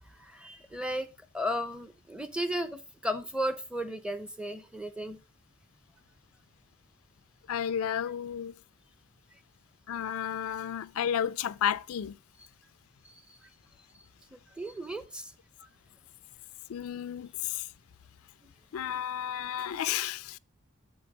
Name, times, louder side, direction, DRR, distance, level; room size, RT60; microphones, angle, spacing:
voice 1, 0.2-1.1 1.3-5.2 13.0-13.2 14.3-15.3 15.6-15.7, equal, 5° right, 0.6 m, -35 dB
voice 2, 7.5-8.6 9.9-12.2 16.7-17.7 18.7-20.4, left 9 dB, 90° left, 0.4 m, -32 dB
6.9 x 6.8 x 4.8 m
head